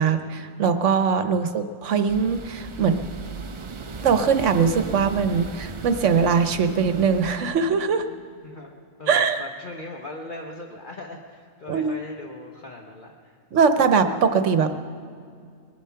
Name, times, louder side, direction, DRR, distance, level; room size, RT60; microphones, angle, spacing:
voice 1, 0.0-3.0 4.0-8.0 9.1-9.4 11.7-11.9 13.5-14.7, right 6 dB, 65° right, 8 dB, 1.2 m, -21 dB
sound 1, 2.1-7.4, right 4 dB, 50° right, 0.3 m, -36 dB
voice 2, 9.0-13.4, left 2 dB, 40° left, 0 dB, 1.1 m, -39 dB
21.0 x 11.0 x 5.7 m, 2.2 s
omnidirectional pair, 1.4 m